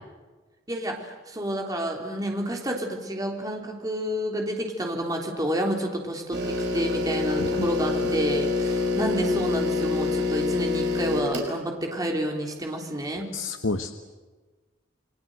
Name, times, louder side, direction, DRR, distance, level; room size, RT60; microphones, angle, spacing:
voice 1, 0.7-13.3, equal, 20° right, 1 dB, 3.5 m, -29 dB
sound 1, 6.3-11.5, left 3 dB, 55° right, 5.4 m, -26 dB
voice 2, 13.3-13.9, left 3 dB, 70° left, 7 dB, 1.1 m, -28 dB
29.0 x 22.5 x 7.9 m, 1.3 s
head